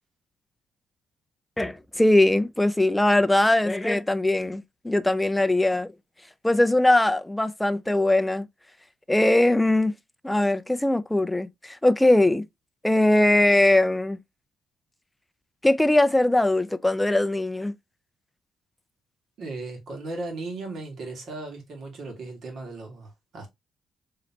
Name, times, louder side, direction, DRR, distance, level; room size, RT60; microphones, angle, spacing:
voice 1, 1.6-5.9 6.4-8.5 9.1-9.9 10.2-12.4 12.8-14.2 15.6-17.7, left 1 dB, 10° left, 0.4 m, -21 dB
voice 2, 19.4-23.5, right 2 dB, 65° right, 1.8 m, -36 dB
3.9 x 3.2 x 2.8 m
cardioid pair, 90°, 0 cm